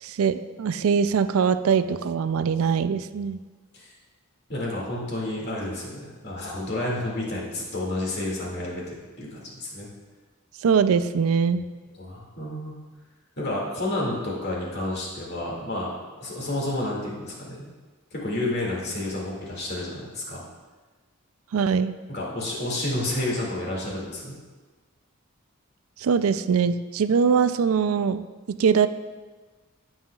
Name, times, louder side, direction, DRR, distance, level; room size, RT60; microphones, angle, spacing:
voice 1, 0.0-3.4 10.6-11.6 21.5-21.9 26.0-28.2 28.6-28.9, right 6 dB, 80° right, 12 dB, 0.4 m, -22 dB
voice 2, 4.5-8.8 9.2-9.9 12.0-12.8 13.4-15.9 16.2-17.7 18.1-20.4 22.1-24.3, left 1 dB, 50° left, -4 dB, 2.2 m, -30 dB
16.5 x 5.6 x 2.4 m, 1.3 s
head